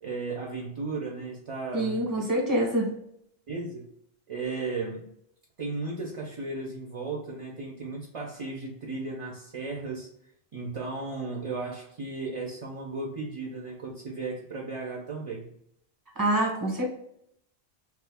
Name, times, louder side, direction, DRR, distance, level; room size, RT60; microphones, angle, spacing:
voice 1, 0.0-2.0 3.5-3.9 4.3-5.1 5.6-10.1 10.5-15.5, right 3 dB, 40° right, -2 dB, 0.5 m, -35 dB
voice 2, 1.7-2.9 16.2-16.8, right 1 dB, 20° right, -1 dB, 0.9 m, -26 dB
3.0 x 2.3 x 3.4 m, 0.74 s
omnidirectional pair, 1.1 m